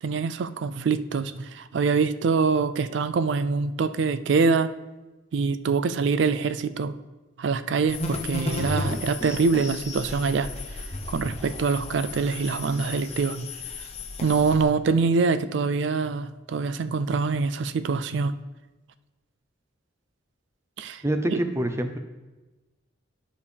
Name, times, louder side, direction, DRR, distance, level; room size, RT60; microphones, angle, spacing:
voice 1, 0.0-4.7 5.3-6.9 7.4-10.5 11.1-13.5 14.2-18.3 20.8-21.0 21.3-21.4, right 4 dB, 65° right, 12 dB, 0.4 m, -24 dB
sound 1, 7.9-14.6, left 2 dB, 30° left, 0.8 m, -34 dB
voice 2, 21.0-22.0, right 1 dB, 15° right, 7 dB, 0.5 m, -26 dB
12.0 x 5.1 x 3.4 m, 1.2 s
head